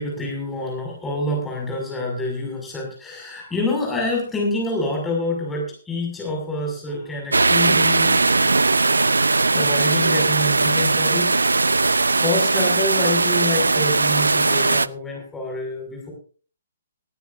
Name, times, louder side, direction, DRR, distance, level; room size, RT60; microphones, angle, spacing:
voice 1, 0.0-9.1 9.5-11.3 12.2-16.1, left 1 dB, 10° left, -1 dB, 6.3 m, -27 dB
sound 1, 7.3-14.9, right 3 dB, 75° right, 0.6 m, -19 dB
18.0 x 16.0 x 2.7 m, 0.39 s
figure-of-eight pair, 125°, 0 cm